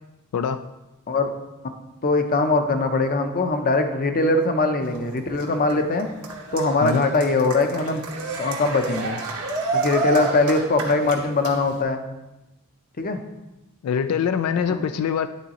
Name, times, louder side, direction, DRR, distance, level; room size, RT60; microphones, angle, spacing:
voice 1, 2.0-6.1 6.5-8.0 8.4-9.2 9.7-12.0 13.0-13.2 14.7-14.8, left 3 dB, 40° left, 7 dB, 0.6 m, -21 dB
Cheering, 4.8-11.8, right 4 dB, 80° right, 1.2 m, -30 dB
voice 2, 13.8-15.3, left 7 dB, 85° left, 10 dB, 0.3 m, -23 dB
11.0 x 3.9 x 2.9 m, 1.0 s
head